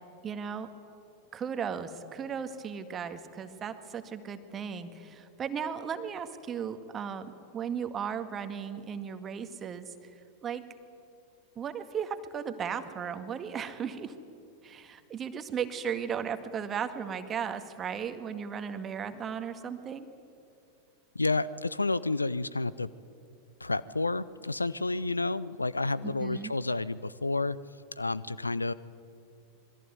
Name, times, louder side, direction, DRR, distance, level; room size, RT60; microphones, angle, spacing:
voice 1, 0.2-0.7 1.3-10.1 10.4-10.6 11.6-14.2 14.6-20.1 26.0-26.5, right 7 dB, 25° right, 9 dB, 1.9 m, -36 dB
voice 2, 21.1-22.9 23.6-27.6 28.0-28.7, left 3 dB, 80° left, 19 dB, 0.6 m, -30 dB
27.0 x 21.5 x 9.5 m, 2.5 s
figure-of-eight pair, 90°, 0 cm